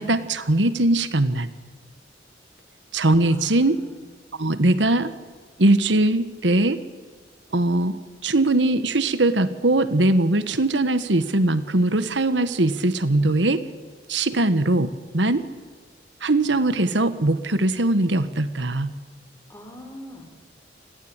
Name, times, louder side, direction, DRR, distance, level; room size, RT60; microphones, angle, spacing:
voice 1, 0.0-1.5 2.9-3.8 4.4-5.1 5.6-6.8 7.5-7.9 8.2-13.6 14.1-15.4 16.2-18.9, right 2 dB, 85° right, 12 dB, 1.5 m, -21 dB
voice 2, 3.2-4.0 19.5-20.2, left 1 dB, 15° left, 4 dB, 4.7 m, -42 dB
28.0 x 20.5 x 9.0 m, 1.4 s
head